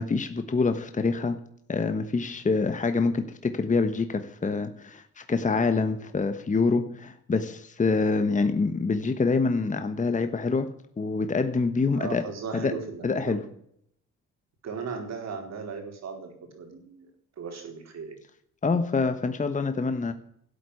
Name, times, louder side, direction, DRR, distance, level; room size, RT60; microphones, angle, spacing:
voice 1, 0.0-1.4 1.7-10.7 11.0-12.2 12.5-12.8 13.0-13.5 18.6-20.1, left 4 dB, 25° left, 8 dB, 1.2 m, -26 dB
voice 2, 11.9-13.5 14.6-17.1 17.4-18.1, right 5 dB, 60° right, 4 dB, 4.4 m, -37 dB
12.5 x 8.3 x 9.6 m, 0.69 s
cardioid pair, 90°, 30 cm